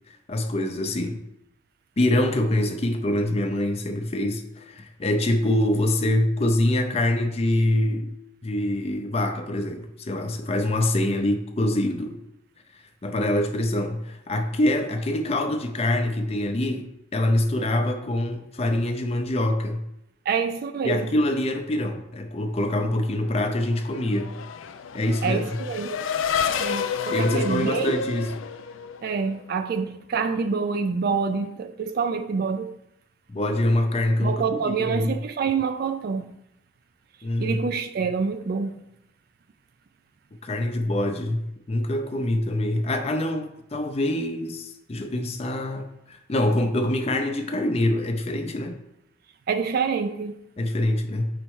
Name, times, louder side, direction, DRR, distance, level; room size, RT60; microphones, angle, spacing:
voice 1, 0.1-1.2 2.0-8.1 8.4-12.2 12.7-16.9 17.1-19.8 20.8-24.3 24.9-25.5 27.1-28.3 33.3-35.1 37.2-37.6 40.4-41.4 41.7-48.8 50.6-51.3, left 1 dB, 30° left, 0.5 m, -25 dB
voice 2, 20.3-21.2 25.2-26.0 26.6-28.0 29.0-32.7 34.2-36.4 37.4-38.7 49.5-50.3, right 5 dB, 50° right, 0.3 m, -27 dB
Race car auto racing / Accelerating revving vroom, 23.3-29.4, left 6 dB, 90° left, 0.4 m, -30 dB
5.3 x 4.2 x 4.6 m
head